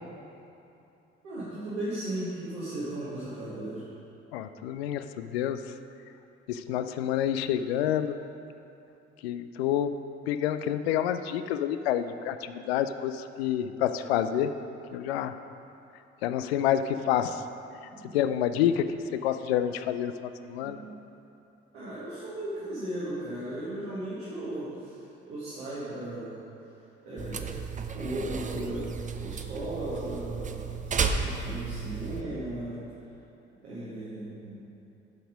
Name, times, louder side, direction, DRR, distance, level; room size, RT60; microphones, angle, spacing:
voice 1, 1.2-3.8 17.9-18.2 20.6-21.0 21.7-24.9 25.3-26.4 27.1-27.5 27.9-28.9 29.2-32.8 33.6-34.6, right 1 dB, 75° right, -10 dB, 1.8 m, -36 dB
voice 2, 4.3-5.6 6.5-8.2 9.2-14.5 14.9-15.4 16.2-17.4 18.1-18.8 19.1-20.8, left 10 dB, 70° left, 10 dB, 0.5 m, -28 dB
sound 1, 27.2-32.2, right 5 dB, 25° right, 0.6 m, -33 dB
10.5 x 5.9 x 5.1 m, 2.8 s
figure-of-eight pair, 45°, 32 cm